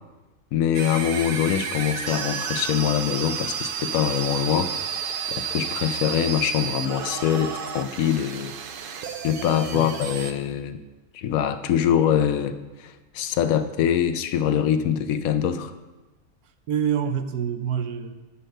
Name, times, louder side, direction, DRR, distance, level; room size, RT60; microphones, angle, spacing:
voice 1, 0.5-4.7 5.3-8.5 9.2-10.8 11.1-15.7, left 9 dB, 75° left, 11 dB, 1.0 m, -24 dB
sound 1, 0.7-10.3, right 7 dB, 65° right, 0.5 m, -31 dB
voice 2, 16.7-18.1, right 8 dB, 85° right, 9 dB, 1.2 m, -26 dB
7.8 x 5.6 x 6.4 m, 1.2 s
omnidirectional pair, 1.5 m